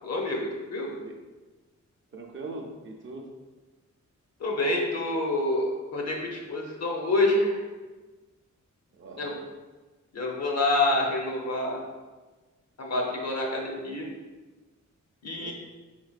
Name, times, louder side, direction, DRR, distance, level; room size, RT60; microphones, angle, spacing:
voice 1, 0.0-0.9 4.4-7.6 9.2-9.3 10.1-11.8 12.8-14.1 15.2-15.5, left 2 dB, 60° left, -1 dB, 0.8 m, -27 dB
voice 2, 2.1-3.3 9.0-9.4 15.4-15.5, right 3 dB, 40° right, 0 dB, 0.5 m, -41 dB
4.4 x 3.8 x 2.4 m, 1.3 s
wide cardioid pair, 170°, 30 cm